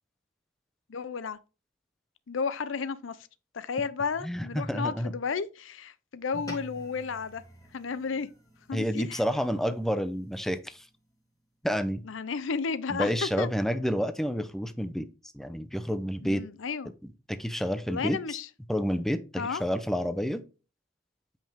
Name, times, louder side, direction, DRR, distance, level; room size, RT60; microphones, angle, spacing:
voice 1, 0.9-1.4 2.3-3.2 3.5-7.4 7.7-8.3 8.7-9.2 12.0-13.5 16.2-16.9 17.9-18.5 19.4-19.6, left 5 dB, 80° left, 0.6 m, -33 dB
voice 2, 4.2-5.1 8.7-10.8 11.6-12.0 12.9-15.1 15.3-16.4 17.3-18.4 18.7-20.4, equal, ahead, 0.6 m, -29 dB
sound 1, 6.3-10.9, equal, 20° left, 2.8 m, -48 dB
8.8 x 5.4 x 3.5 m
head